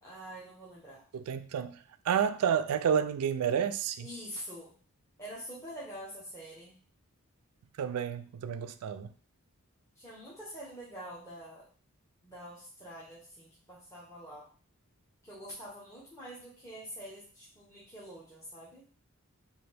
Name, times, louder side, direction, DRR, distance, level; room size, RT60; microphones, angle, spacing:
voice 1, 0.0-1.0 4.0-4.7 5.2-6.8 10.0-11.7 12.2-14.5 15.2-18.8, equal, 15° left, 0.8 m, -46 dB
voice 2, 1.1-4.1 7.8-9.1, right 8 dB, 75° right, 0.3 m, -30 dB
3.9 x 2.6 x 3.3 m
head